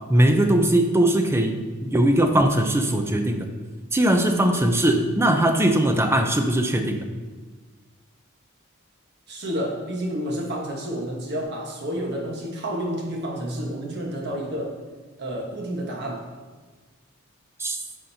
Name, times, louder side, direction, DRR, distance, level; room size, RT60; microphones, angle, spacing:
voice 1, 0.1-1.6 1.8-3.5 3.9-7.1 17.6-17.8, right 1 dB, 10° right, 5 dB, 0.5 m, -20 dB
voice 2, 9.3-14.7 15.2-16.2, equal, 55° right, 0 dB, 1.2 m, -30 dB
9.8 x 5.1 x 2.8 m, 1.3 s
head